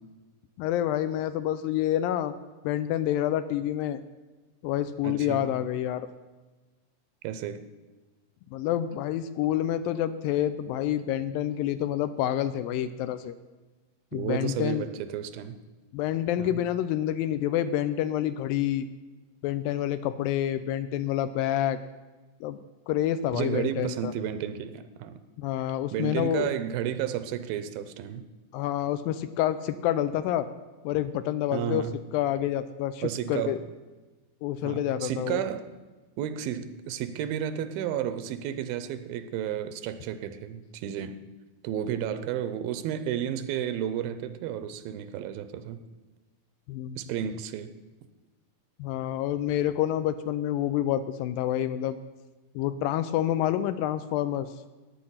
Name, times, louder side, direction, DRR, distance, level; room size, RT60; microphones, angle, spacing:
voice 1, 0.6-2.3 2.6-4.0 4.6-6.1 8.5-13.3 14.1-14.9 15.9-18.9 19.4-21.8 22.4-22.6 22.9-24.1 25.4-26.5 28.5-30.5 30.8-31.8 32.1-33.6 34.4-35.4 46.7-47.0 48.8-52.0 52.6-54.5, left 11 dB, 80° left, 12 dB, 2.2 m, -28 dB
voice 2, 5.0-5.5 7.2-7.6 14.1-15.6 16.4-16.6 23.3-25.2 25.9-28.3 31.5-32.0 33.0-33.6 34.6-35.7 36.2-41.2 41.6-45.8 47.0-47.7, right 10 dB, 85° right, 12 dB, 2.5 m, -32 dB
14.5 x 9.8 x 5.7 m, 1.2 s
omnidirectional pair, 4.2 m